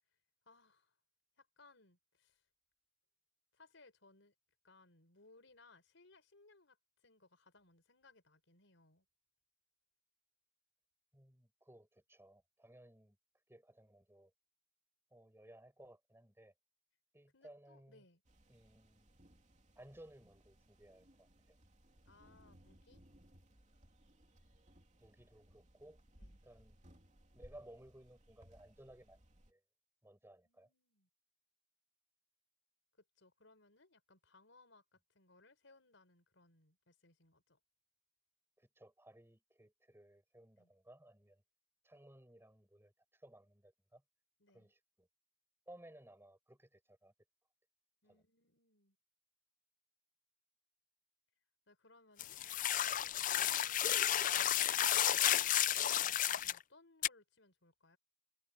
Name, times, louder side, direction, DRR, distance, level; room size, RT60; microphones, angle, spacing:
voice 1, 0.4-0.9 1.4-2.4 3.5-4.3 4.6-6.8 7.0-9.0 17.3-18.2 22.0-23.1 26.2-26.4 30.4-31.1 33.2-37.6 40.5-40.7 44.4-44.7 48.0-49.0 51.7-52.4 52.7-58.0, left 3 dB, 80° left, 4.9 m, -66 dB
voice 2, 11.1-13.2 13.5-14.3 15.1-16.5 17.1-18.0 18.5-19.1 19.7-21.6 25.0-26.0 26.4-26.8 27.3-29.2 29.5-29.6 30.0-30.7 38.6-41.4 41.8-44.0 44.5-45.1 45.7-47.1 48.1-48.2, right 1 dB, 15° right, 4.9 m, -60 dB
sound 1, 18.2-29.5, equal, 40° right, 3.0 m, -64 dB
sound 2, 52.2-56.6 57.0-57.1, left 12 dB, 45° left, 0.4 m, -32 dB
head